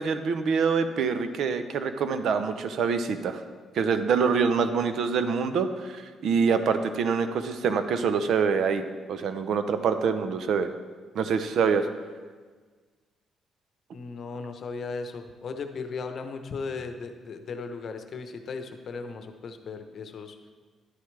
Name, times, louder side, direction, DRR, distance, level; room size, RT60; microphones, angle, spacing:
voice 1, 0.0-3.4 3.7-8.8 9.1-10.7 11.1-11.9, right 5 dB, 70° right, 10 dB, 0.7 m, -25 dB
voice 2, 13.9-20.4, left 4 dB, 55° left, 7 dB, 0.9 m, -36 dB
11.0 x 9.4 x 3.3 m, 1.5 s
cardioid pair, 90°, 0 cm